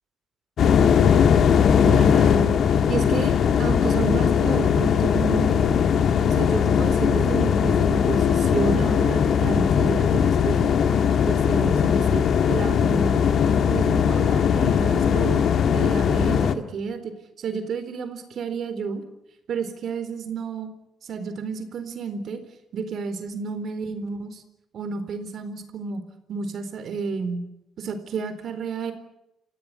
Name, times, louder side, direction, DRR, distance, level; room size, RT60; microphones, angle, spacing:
sound 1, 0.6-16.5, left 7 dB, 65° left, 1.7 m, -19 dB
voice 1, 1.8-5.7 6.3-10.7 11.3-12.2 12.5-13.3 13.7-15.4 15.7-17.1 17.4-19.0 19.5-20.7 21.1-22.4 22.7-24.4 24.7-26.0 26.3-27.4 27.8-28.9, right 5 dB, 65° right, 9 dB, 4.2 m, -30 dB
28.5 x 16.5 x 9.9 m, 0.86 s
cardioid pair, 90°, 0 cm